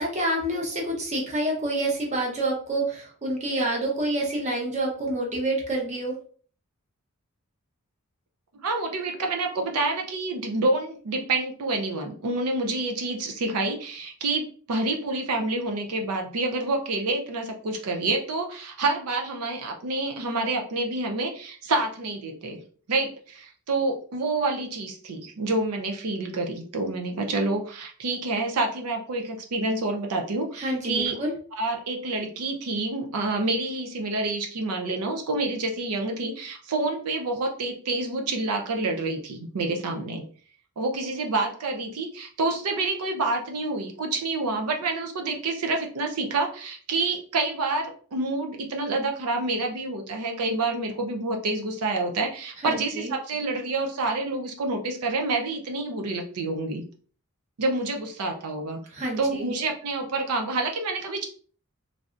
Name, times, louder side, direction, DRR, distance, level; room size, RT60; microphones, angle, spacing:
voice 1, 0.0-6.1 30.6-31.3 52.6-53.1 58.9-59.5, right 1 dB, 30° right, -1 dB, 0.8 m, -28 dB
voice 2, 8.5-22.6 22.9-31.2 31.6-40.2 40.8-56.8 57.6-58.8 59.2-61.2, right 2 dB, 85° right, 3 dB, 0.5 m, -28 dB
3.3 x 2.5 x 2.4 m, 0.44 s
head